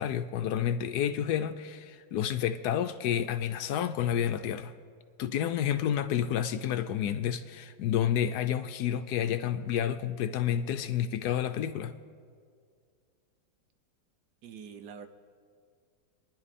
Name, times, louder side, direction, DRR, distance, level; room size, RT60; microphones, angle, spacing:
voice 1, 0.0-4.7 5.2-11.9, left 10 dB, 75° left, 10 dB, 1.0 m, -30 dB
voice 2, 14.4-15.1, right 7 dB, 70° right, 9 dB, 1.3 m, -45 dB
27.5 x 10.5 x 4.2 m, 2.1 s
omnidirectional pair, 1.9 m